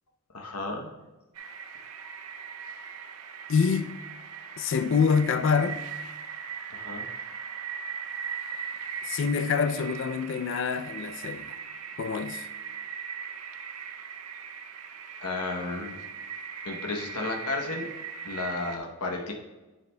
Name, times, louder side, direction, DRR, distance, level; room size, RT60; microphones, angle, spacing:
voice 1, 0.3-0.9 6.7-7.1 15.2-16.0 16.6-17.9 18.2-19.3, left 3 dB, 85° left, 0.9 m, -33 dB
sound 1, 1.3-18.8, right 6 dB, 85° right, 0.6 m, -39 dB
voice 2, 3.5-4.0 4.6-5.8 9.1-11.5 12.0-12.5, left 5 dB, 55° left, 0.4 m, -26 dB
9.3 x 7.3 x 2.2 m
head